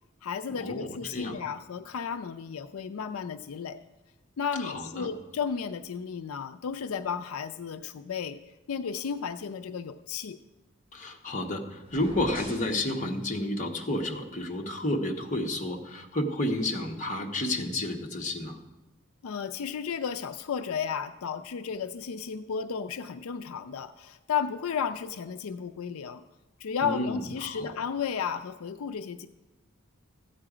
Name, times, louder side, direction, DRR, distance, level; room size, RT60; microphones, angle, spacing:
voice 1, 0.2-3.8 4.4-8.4 8.7-10.4 19.2-26.2 26.6-29.3, left 6 dB, 85° left, 9 dB, 0.4 m, -33 dB
voice 2, 4.6-5.1 10.9-18.6 26.8-27.7, left 1 dB, 35° left, 1 dB, 1.1 m, -31 dB
sound 1, 11.8-12.7, equal, 25° right, 4.9 m, -42 dB
13.5 x 8.6 x 4.9 m, 1.1 s
head